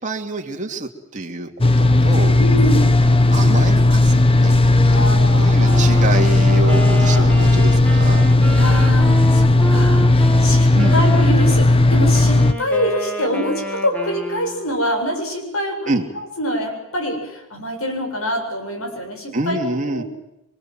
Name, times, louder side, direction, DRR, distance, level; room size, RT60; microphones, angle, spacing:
voice 1, 0.0-2.3 3.0-8.3 10.7-11.0 15.9-16.1 19.3-20.0, right 2 dB, 35° right, 3 dB, 2.7 m, -27 dB
sound 1, 1.6-12.5, left 2 dB, 25° left, 1.2 m, -14 dB
voice 2, 2.4-2.9 4.9-7.3 8.5-19.6 19.9-20.1, equal, 80° left, 5 dB, 7.7 m, -25 dB
Wind instrument woodwind instrument, 5.5-11.6 12.1-14.8, right 1 dB, 5° left, 3.5 m, -30 dB
28.5 x 23.5 x 7.7 m, 0.90 s
head